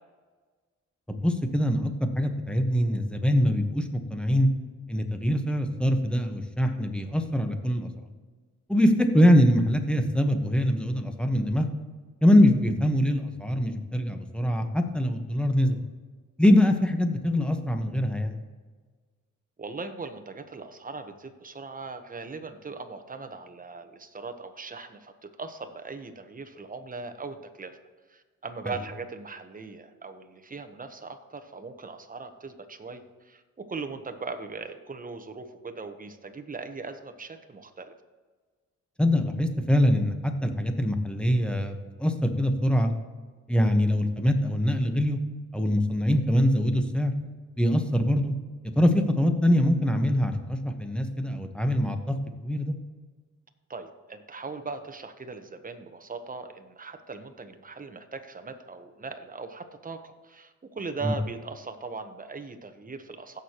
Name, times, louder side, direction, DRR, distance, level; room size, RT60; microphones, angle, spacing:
voice 1, 1.1-4.5 4.9-7.9 8.7-11.7 12.2-15.8 16.4-18.3 39.0-42.9 43.5-45.2 45.5-47.1 47.6-48.3 48.7-52.2 52.4-52.7 61.0-61.1, equal, 5° left, 5 dB, 1.2 m, -23 dB
voice 2, 19.6-27.8 28.1-37.9 43.5-43.6 53.7-63.4, right 4 dB, 25° right, 8 dB, 1.0 m, -39 dB
16.0 x 6.5 x 3.0 m, 1.4 s
cardioid pair, 95°, 30 cm